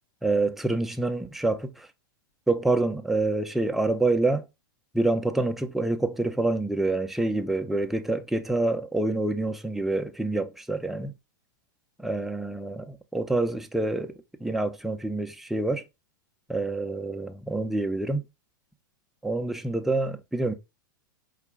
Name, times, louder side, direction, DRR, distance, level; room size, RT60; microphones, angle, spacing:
voice 1, 0.2-1.9 2.5-4.4 4.9-11.1 12.0-14.1 14.4-15.8 16.5-18.2 19.2-20.5, right 2 dB, ahead, 0.5 m, -27 dB
4.7 x 2.2 x 3.5 m
hypercardioid pair, 125°, 11 cm